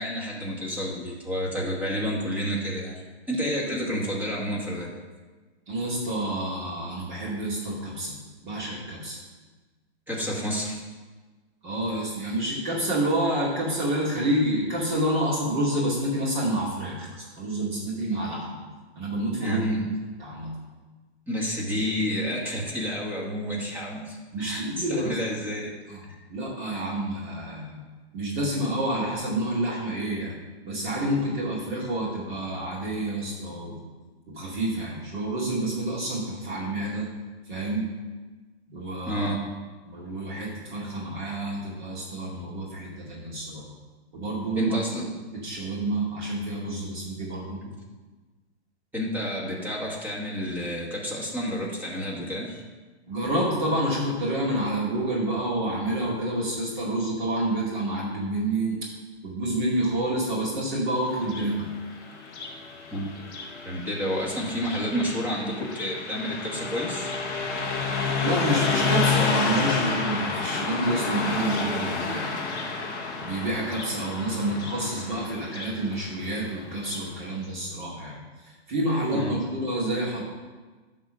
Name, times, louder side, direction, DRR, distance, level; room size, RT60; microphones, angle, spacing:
voice 1, 0.0-3.0 3.3-5.0 10.1-10.8 19.4-19.9 21.3-24.6 25.0-25.7 26.1-26.2 39.1-39.4 44.6-45.1 48.9-52.6 62.9-63.3 63.6-67.1 79.1-79.3, equal, 5° right, -3 dB, 1.2 m, -30 dB
voice 2, 5.7-8.2 8.4-9.2 11.6-18.6 18.9-19.6 20.2-20.6 24.3-25.2 25.9-26.0 26.3-27.8 28.1-30.3 30.6-33.8 34.3-37.1 37.5-37.9 38.7-39.3 39.8-43.7 44.1-44.8 45.3-47.6 53.1-58.8 59.2-61.7 68.2-72.3 73.2-80.2, right 1 dB, 45° right, -5 dB, 2.2 m, -28 dB
Car passing by, 61.1-77.1, left 4 dB, 10° left, 0.4 m, -30 dB
10.5 x 3.7 x 6.1 m, 1.3 s
hypercardioid pair, 150°, 34 cm